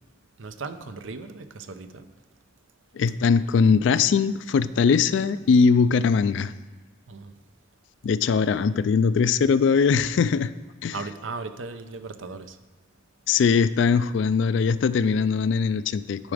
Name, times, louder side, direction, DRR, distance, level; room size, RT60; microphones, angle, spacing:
voice 1, 0.4-2.1 7.1-7.3 10.9-12.6, right 4 dB, 85° right, 10 dB, 0.6 m, -37 dB
voice 2, 3.0-6.5 8.0-10.5 10.8-10.9 13.3-16.3, left 5 dB, 70° left, 15 dB, 0.3 m, -21 dB
11.0 x 4.9 x 4.9 m, 1.3 s
head